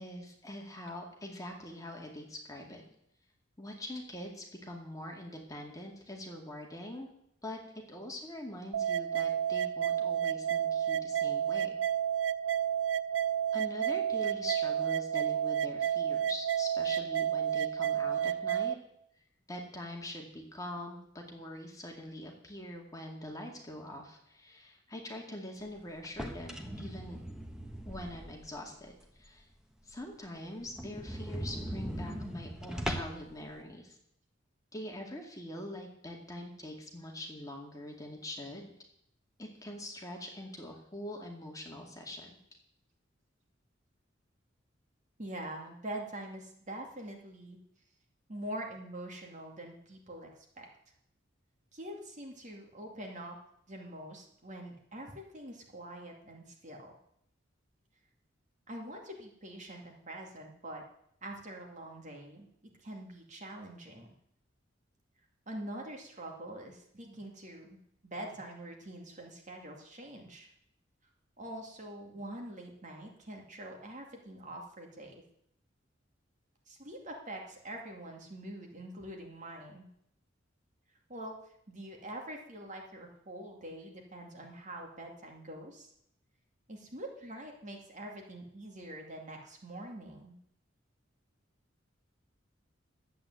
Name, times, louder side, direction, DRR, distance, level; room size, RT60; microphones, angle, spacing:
voice 1, 0.0-2.8 3.6-7.1 7.4-7.6 7.9-11.8 13.5-18.8 19.5-27.2 27.9-29.5 29.8-34.0 34.7-38.7 39.4-42.4, left 1 dB, 20° left, 1 dB, 2.2 m, -43 dB
sound 1, 8.7-18.7, right 9 dB, 75° right, 0.5 m, -31 dB
sound 2, 26.0-28.6 29.0-29.1 29.5-29.6 29.9-30.0 30.2-30.3 30.7-33.3, equal, 5° right, 1.3 m, -39 dB
voice 2, 45.2-47.6 48.3-50.3 50.6-50.7 51.7-53.4 53.7-57.0 58.7-60.8 61.2-62.5 62.8-64.1 65.5-67.8 68.0-70.5 71.4-75.2 76.7-79.9 81.1-85.9 86.7-90.4, right 1 dB, 40° right, 1 dB, 2.4 m, -44 dB
11.5 x 8.6 x 8.0 m, 0.73 s
head